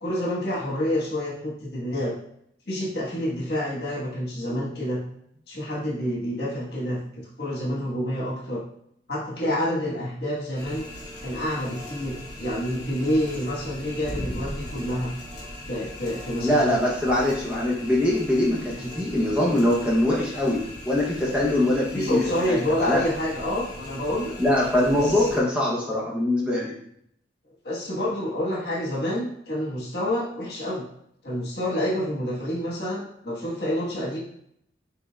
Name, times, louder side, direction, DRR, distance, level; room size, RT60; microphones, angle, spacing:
voice 1, 0.0-2.1 2.7-5.0 5.5-8.6 9.1-10.9 11.2-15.1 15.7-16.8 18.8-18.9 21.9-24.3 24.9-25.4 27.6-30.8 31.2-34.2, left 1 dB, 65° left, -4 dB, 1.4 m, -28 dB
sound 1, 10.5-25.4, left 1 dB, 25° left, 1.0 m, -39 dB
voice 2, 16.4-20.6 20.8-23.0 24.4-26.8, left 1 dB, 5° right, -5 dB, 0.8 m, -23 dB
5.6 x 3.4 x 2.3 m, 0.70 s
head